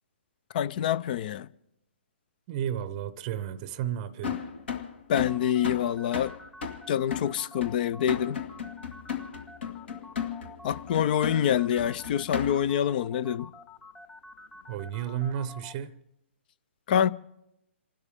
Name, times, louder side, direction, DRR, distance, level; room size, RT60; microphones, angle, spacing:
voice 1, 0.5-1.5 5.1-6.3 6.9-8.4 10.6-13.5 16.9-17.1, left 9 dB, 45° left, 0.5 m, -26 dB
voice 2, 2.5-4.4 14.7-16.0, right 10 dB, 35° right, 0.7 m, -33 dB
sound 1, 4.2-12.8, left 7 dB, 60° left, 2.0 m, -35 dB
sound 2, 5.1-15.7, left 2 dB, 10° left, 0.8 m, -48 dB
28.5 x 12.5 x 3.6 m
figure-of-eight pair, 130°, 7 cm